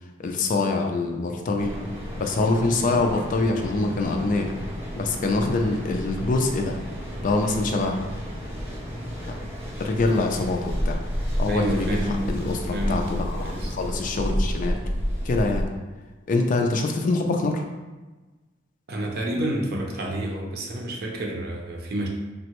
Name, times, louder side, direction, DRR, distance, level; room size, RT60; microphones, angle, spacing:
voice 1, 0.2-1.8 2.2-4.5 4.9-6.8 7.2-8.0 9.3-9.4 9.8-11.0 11.4-12.0 12.3-14.8 15.2-15.7 16.3-17.6, left 3 dB, 45° left, 3 dB, 0.3 m, -24 dB
Mechanical fan, 1.6-15.6, equal, 10° right, 0.5 m, -31 dB
voice 2, 11.5-13.8 18.9-22.1, right 1 dB, 55° right, -1 dB, 0.6 m, -29 dB
3.6 x 2.1 x 2.9 m, 1.2 s
head